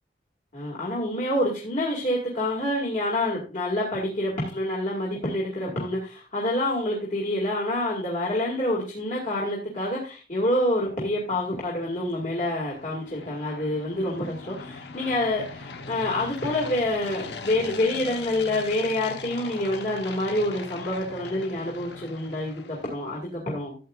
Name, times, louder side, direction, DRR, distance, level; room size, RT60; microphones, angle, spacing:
voice 1, 0.5-23.8, left 1 dB, 45° left, -4 dB, 2.1 m, -27 dB
sound 1, 10.9-23.2, left 4 dB, 75° left, 0.9 m, -41 dB
13.0 x 8.3 x 2.4 m, 0.36 s
head